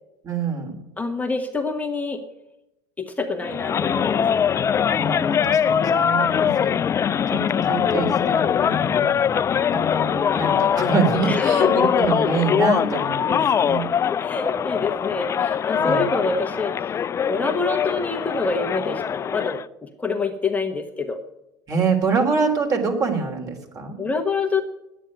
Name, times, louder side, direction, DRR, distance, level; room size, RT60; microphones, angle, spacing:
voice 1, 0.2-0.8 4.9-6.7 7.3-9.1 9.7-13.9 15.7-16.0 21.7-24.0, right 4 dB, 40° right, 3 dB, 3.4 m, -25 dB
voice 2, 1.0-2.2 3.0-4.2 11.3-11.9 14.2-17.0 17.3-21.2 24.0-24.6, left 4 dB, 15° left, 4 dB, 1.2 m, -26 dB
sound 1, 3.4-19.6, left 8 dB, 30° left, 0.4 m, -22 dB
10.0 x 9.2 x 9.5 m, 0.89 s
hypercardioid pair, 85°, 9 cm